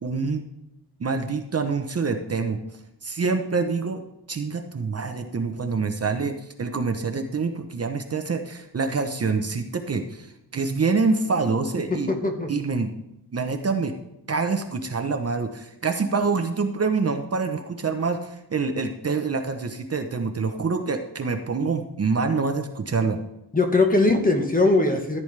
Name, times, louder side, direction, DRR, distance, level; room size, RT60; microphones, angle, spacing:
voice 1, 0.0-0.4 1.0-2.6 3.0-4.0 4.3-12.1 12.5-12.9 13.3-13.9 14.3-23.2, right 4 dB, 35° right, 6 dB, 0.8 m, -26 dB
voice 2, 12.1-12.5 23.5-25.2, left 2 dB, 20° left, 4 dB, 1.2 m, -20 dB
14.0 x 8.9 x 3.3 m, 0.86 s
wide cardioid pair, 145°, 40 cm